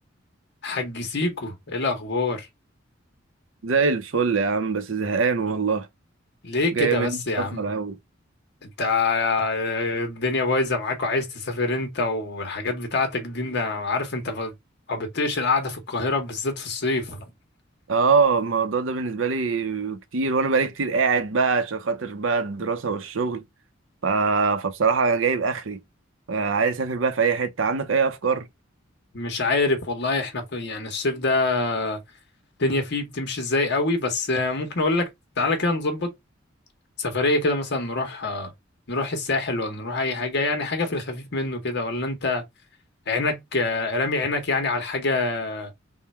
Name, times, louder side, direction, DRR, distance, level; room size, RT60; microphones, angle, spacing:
voice 1, 0.6-2.5 6.4-7.6 8.6-14.5 14.9-17.2 29.1-32.0 32.6-35.1 35.4-36.1 37.0-38.5 38.9-42.4 43.1-45.7, left 3 dB, 60° left, 1.0 m, -25 dB
voice 2, 3.6-5.9 6.7-8.0 17.9-23.4 24.0-25.8 26.3-28.5, right 5 dB, 75° right, 0.7 m, -23 dB
3.6 x 2.2 x 4.2 m
head